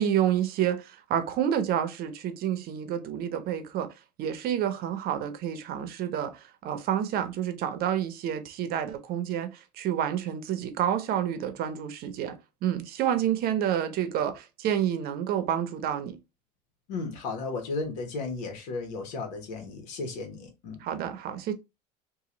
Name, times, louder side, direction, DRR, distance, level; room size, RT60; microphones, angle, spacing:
voice 1, 0.0-3.9 4.2-12.4 12.6-16.2 20.8-21.5, right 10 dB, 50° right, 0.8 m, -29 dB
voice 2, 16.9-20.8, left 3 dB, 75° left, 1.5 m, -34 dB
3.0 x 2.7 x 3.8 m
supercardioid pair, 115°, 21 cm